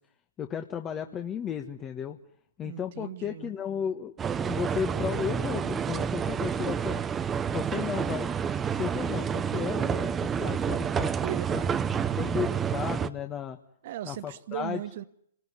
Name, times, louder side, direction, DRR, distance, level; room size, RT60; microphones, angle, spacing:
voice 1, 0.4-2.2 2.6-4.1 4.4-7.0 7.5-8.3 8.7-11.1 11.5-11.6 12.1-13.6 14.0-14.8, left 8 dB, 25° left, 1.5 m, -34 dB
voice 2, 2.6-3.5 11.2-12.2 13.8-15.0, right 13 dB, 55° right, 1.3 m, -38 dB
sound 1, 4.2-13.1, right 7 dB, 20° right, 1.1 m, -29 dB
27.5 x 20.0 x 9.9 m
hypercardioid pair, 120°, 0 cm